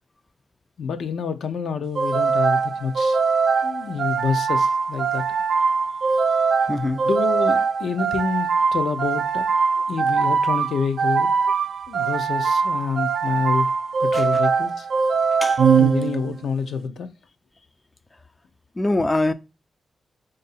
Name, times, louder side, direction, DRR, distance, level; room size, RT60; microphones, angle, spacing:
voice 1, 0.8-3.2 3.6-5.2 7.0-9.5 9.9-11.3 11.9-13.7 14.0-14.9 15.8-17.1, left 5 dB, 80° left, 0.6 m, -27 dB
sound 1, 1.9-16.5, right 5 dB, 65° right, 0.5 m, -22 dB
voice 2, 6.7-7.0 14.1-14.2 15.4-15.7 18.8-19.3, left 2 dB, 25° left, 0.4 m, -23 dB
4.6 x 2.6 x 4.0 m
cardioid pair, 90°, 0 cm